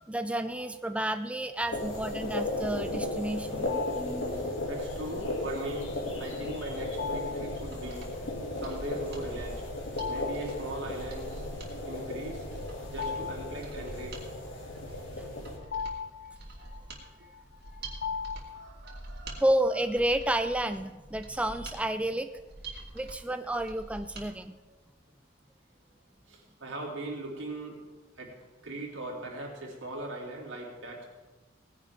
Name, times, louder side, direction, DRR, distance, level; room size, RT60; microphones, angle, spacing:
voice 1, 0.1-4.6 19.4-22.3 22.7-24.6, right 1 dB, 5° right, 9 dB, 0.4 m, -31 dB
sound 1, 1.7-15.6, left 1 dB, 75° left, 2.9 m, -35 dB
sound 2, 3.7-4.3 7.0-7.6 9.9-10.6 11.0-11.1 12.5-14.1 15.0-18.9, left 6 dB, 55° left, 0.9 m, -38 dB
voice 2, 3.9-5.9 6.2-8.3 8.6-9.6 10.1-11.4 11.9-12.5 12.9-14.5 14.8-15.3 16.6-16.8 18.5-19.4 26.3-27.8 28.2-28.3 28.6-31.0, right 2 dB, 85° right, -2 dB, 3.5 m, -40 dB
Mechanisms, 7.4-24.3 24.6-24.7, right 2 dB, 60° right, 2.8 m, -46 dB
19.0 x 10.0 x 3.8 m, 1.2 s
head